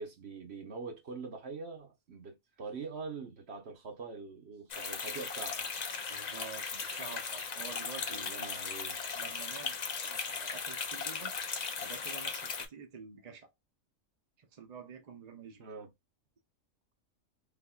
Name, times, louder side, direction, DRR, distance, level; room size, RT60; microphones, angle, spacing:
voice 1, 0.0-5.6 8.1-9.0 15.6-15.9, right 4 dB, 55° right, 1.1 m, -44 dB
sound 1, 4.7-12.7, left 5 dB, 45° left, 0.6 m, -37 dB
voice 2, 6.1-8.7 9.1-9.7 10.0-11.3 11.8-13.5 14.4-15.6, right 5 dB, 35° right, 0.7 m, -48 dB
3.5 x 3.3 x 2.3 m
omnidirectional pair, 1.4 m